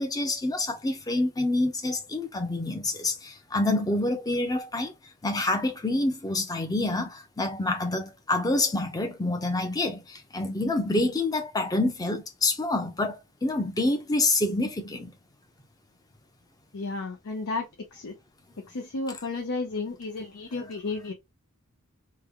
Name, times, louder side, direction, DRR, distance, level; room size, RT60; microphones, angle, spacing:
voice 1, 0.0-4.9 5.2-15.1, left 2 dB, 15° left, 0.6 m, -27 dB
voice 2, 16.7-18.1 18.6-21.1, left 3 dB, 70° left, 0.6 m, -33 dB
3.3 x 2.2 x 3.5 m
head